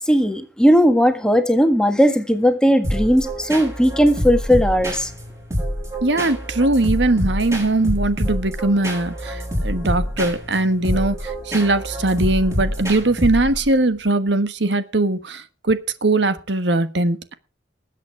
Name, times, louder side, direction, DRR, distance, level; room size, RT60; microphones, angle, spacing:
voice 1, 0.1-5.1, equal, 5° left, 1.7 m, -17 dB
sound 1, 2.8-13.7, equal, 15° right, 6.6 m, -26 dB
voice 2, 6.0-17.3, right 2 dB, 75° right, 1.4 m, -20 dB
20.0 x 8.4 x 4.7 m
head